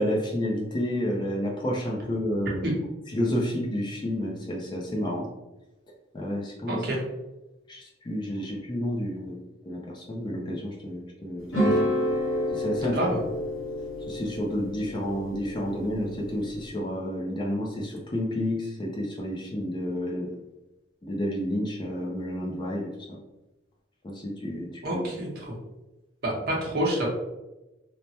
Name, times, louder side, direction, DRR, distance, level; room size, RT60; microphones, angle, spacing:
voice 1, 0.0-2.6 3.1-5.3 6.1-6.8 7.7-9.4 9.7-12.0 12.5-13.0 14.1-20.4 21.0-23.2 24.0-25.0, equal, 25° left, -2 dB, 0.4 m, -30 dB
voice 2, 6.7-7.0 12.8-13.2 24.8-25.5 26.2-27.1, right 1 dB, 50° right, -2 dB, 0.8 m, -28 dB
sound 1, 11.5-16.7, equal, 85° left, 1.0 m, -29 dB
3.2 x 2.0 x 2.7 m, 1.0 s
head